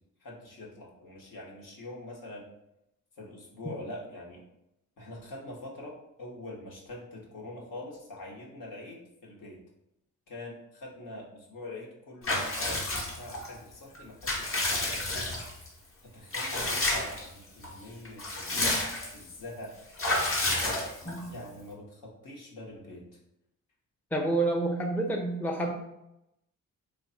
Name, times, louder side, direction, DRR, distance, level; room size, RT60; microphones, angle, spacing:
voice 1, 0.2-2.4 3.2-4.4 5.0-9.6 10.3-15.2 16.1-18.9 19.1-19.8 20.5-20.8 21.0-23.0, left 1 dB, 70° left, -3 dB, 1.1 m, -44 dB
Water / Bathtub (filling or washing) / Liquid, 12.2-13.5 13.9-15.7 16.3-17.3 17.6-17.7 18.0-19.2 20.0-21.3, left 2 dB, 40° left, 0.9 m, -30 dB
voice 2, 24.1-25.8, right 2 dB, 5° left, 1 dB, 0.5 m, -28 dB
3.2 x 2.3 x 3.8 m, 0.85 s
cardioid pair, 70°, 34 cm